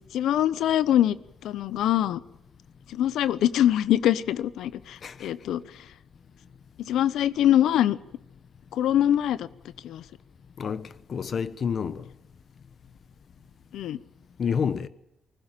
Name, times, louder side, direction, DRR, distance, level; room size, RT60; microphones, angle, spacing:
voice 1, 0.1-1.2 1.4-2.2 2.9-5.6 6.8-8.0 8.7-9.5 9.8-10.0 13.7-14.0, left 11 dB, 80° left, 0.8 m, -23 dB
voice 2, 10.6-12.0 14.4-14.9, left 6 dB, 50° left, 1.1 m, -29 dB
20.0 x 15.0 x 9.0 m
cardioid pair, 90°, 0 cm